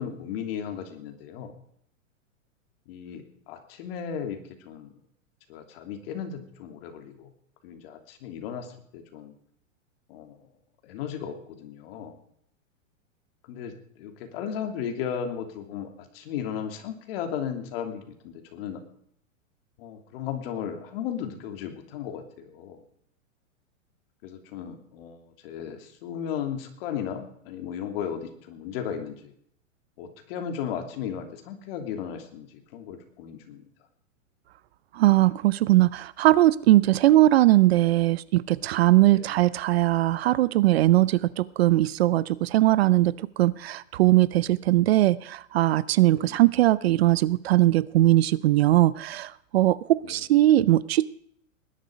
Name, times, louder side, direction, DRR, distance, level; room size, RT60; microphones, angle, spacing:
voice 1, 0.0-1.5 2.9-4.9 5.5-7.3 7.6-9.3 10.1-10.4 10.8-12.2 13.5-15.9 16.1-18.8 19.8-22.8 24.2-29.3 30.0-33.6 39.1-39.4 46.1-46.4 50.0-50.2, left 8 dB, 45° left, 5 dB, 2.9 m, -35 dB
voice 2, 35.0-43.1 43.4-51.0, right 15 dB, 50° right, 20 dB, 0.5 m, -20 dB
19.5 x 11.0 x 5.1 m, 0.67 s
hypercardioid pair, 150°, 39 cm